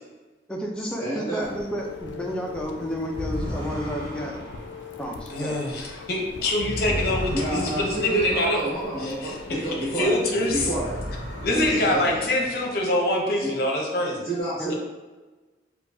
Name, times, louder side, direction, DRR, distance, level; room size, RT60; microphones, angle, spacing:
voice 1, 0.5-4.4 5.0-5.6 14.6-14.7, equal, 5° left, -1 dB, 0.4 m, -31 dB
voice 2, 1.0-1.5 6.9-7.0 7.3-10.1 10.5-10.9 11.7-12.3 13.4-13.5 14.2-14.7, right 2 dB, 25° left, -12 dB, 1.3 m, -29 dB
sound 1, 1.4-11.6, left 4 dB, 85° left, 0.4 m, -41 dB
sound 2, 3.0-10.0 10.3-13.0, equal, 45° right, 1.3 m, -36 dB
voice 3, 5.3-8.6 9.0-9.3 10.0-10.7 11.4-14.2, left 1 dB, 55° left, 0 dB, 0.7 m, -25 dB
4.4 x 2.3 x 2.6 m, 1.2 s
head